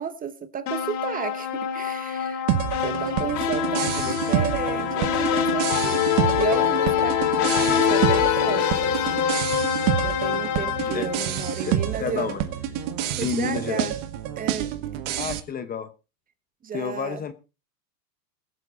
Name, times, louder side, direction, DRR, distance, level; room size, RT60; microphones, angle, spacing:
voice 1, 0.0-2.4 2.8-6.0 6.3-9.3 10.0-12.3 13.2-14.0 14.4-14.7 16.6-17.2, right 7 dB, 15° right, 0.9 m, -32 dB
sound 1, 0.7-11.9, left 8 dB, 35° left, 2.0 m, -25 dB
sound 2, 2.5-15.4, right 11 dB, 50° right, 1.7 m, -28 dB
voice 2, 11.6-12.4 13.2-13.9 15.2-15.9 16.7-17.3, left 7 dB, 20° left, 0.8 m, -30 dB
21.5 x 7.6 x 3.9 m
hypercardioid pair, 125°, 48 cm